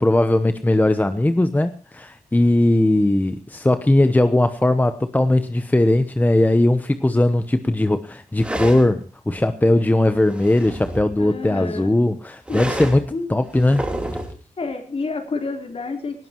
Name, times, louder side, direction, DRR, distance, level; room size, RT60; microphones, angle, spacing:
voice 1, 0.0-13.8, left 1 dB, 10° left, 10 dB, 0.9 m, -19 dB
sound 1, 8.4-8.9 10.1-11.2 12.5-13.1 13.5-14.4, right 1 dB, 10° right, 3.4 m, -29 dB
voice 2, 11.2-11.9 12.5-12.6 13.1-13.3 14.6-16.3, left 3 dB, 45° left, 4 dB, 3.9 m, -29 dB
18.5 x 18.5 x 3.0 m, 0.38 s
wide cardioid pair, 135°, 14 cm